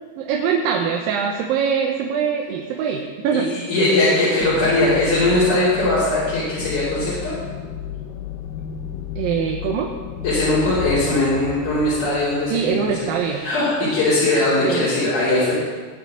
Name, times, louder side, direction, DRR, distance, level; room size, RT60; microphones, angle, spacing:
voice 1, 0.0-3.5 9.2-10.0 12.5-13.4 14.6-14.9, right 7 dB, 85° right, 2 dB, 2.6 m, -23 dB
voice 2, 3.3-7.3 10.2-15.5, left 2 dB, 60° left, -12 dB, 4.7 m, -20 dB
sound 1, 4.4-13.7, left 9 dB, 90° left, 2.5 m, -32 dB
18.5 x 8.9 x 3.9 m, 1.5 s
omnidirectional pair, 4.0 m